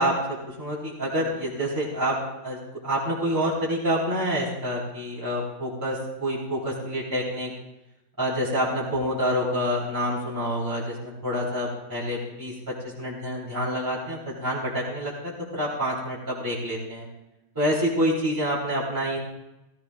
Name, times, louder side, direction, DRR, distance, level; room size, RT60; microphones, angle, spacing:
voice 1, 0.0-2.2 2.4-2.6 2.8-7.5 8.2-17.1 17.5-19.2, equal, 10° right, -8 dB, 3.3 m, -27 dB
17.0 x 16.0 x 2.4 m, 0.96 s
omnidirectional pair, 2.2 m